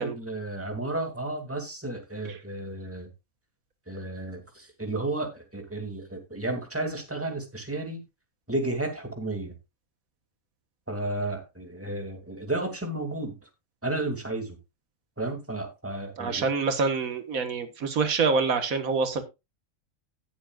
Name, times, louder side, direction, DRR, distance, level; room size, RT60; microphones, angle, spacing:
voice 1, 0.0-3.1 3.9-8.0 8.5-9.5 10.9-13.5 13.8-14.6 15.2-16.5, right 2 dB, 10° right, 3 dB, 2.4 m, -32 dB
voice 2, 16.2-19.2, right 4 dB, 90° right, 8 dB, 1.8 m, -26 dB
18.0 x 7.1 x 2.4 m, 0.24 s
omnidirectional pair, 1.4 m